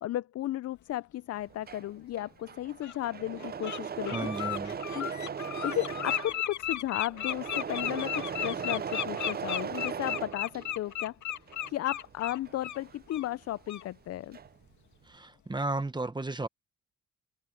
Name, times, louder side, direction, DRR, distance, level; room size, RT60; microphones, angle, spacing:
voice 1, 0.0-4.3 4.9-5.1 5.4-11.2 11.7-14.4, left 13 dB, 55° left, 0.5 m, -34 dB
Engine / Mechanisms, 1.4-11.0 11.3-13.7 14.0-14.7, right 7 dB, 30° right, 0.6 m, -38 dB
Bird, 2.0-2.1 2.8-3.0 3.4-3.8 4.0-12.8 13.1-13.3 13.7-13.8, left 11 dB, 70° left, 2.5 m, -35 dB
voice 2, 4.1-4.8 15.1-16.5, right 2 dB, 15° right, 1.2 m, -34 dB
cardioid pair, 90°, 30 cm